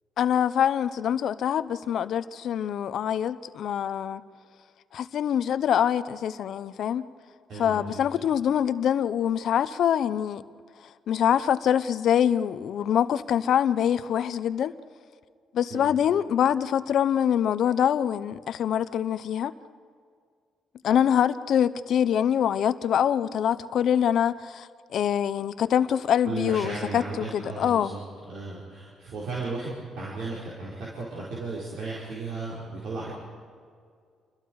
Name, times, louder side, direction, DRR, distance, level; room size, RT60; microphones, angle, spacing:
voice 1, 0.2-4.2 4.9-7.1 7.6-10.4 11.1-14.7 15.5-19.5 20.8-27.9, left 9 dB, 70° left, 0.7 m, -24 dB
voice 2, 7.5-8.0 15.7-15.9 26.2-28.0 28.3-33.1, right 3 dB, 75° right, 4.9 m, -35 dB
28.5 x 21.5 x 4.8 m
cardioid pair, 90°, 0 cm